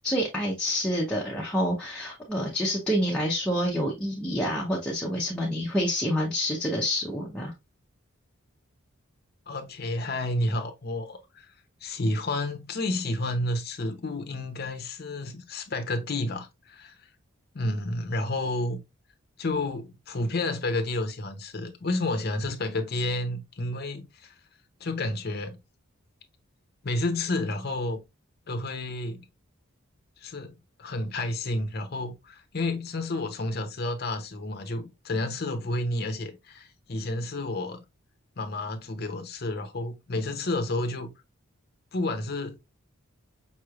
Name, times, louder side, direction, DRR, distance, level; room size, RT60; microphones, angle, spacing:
voice 1, 0.0-7.5, equal, 5° left, 0.7 m, -27 dB
voice 2, 9.5-11.5 11.8-16.9 17.5-18.8 19.4-24.3 24.8-25.6 26.8-28.0 28.5-29.2 30.2-37.8 38.4-41.1 41.9-42.6, left 2 dB, 45° left, 0.7 m, -30 dB
5.5 x 3.1 x 2.4 m
head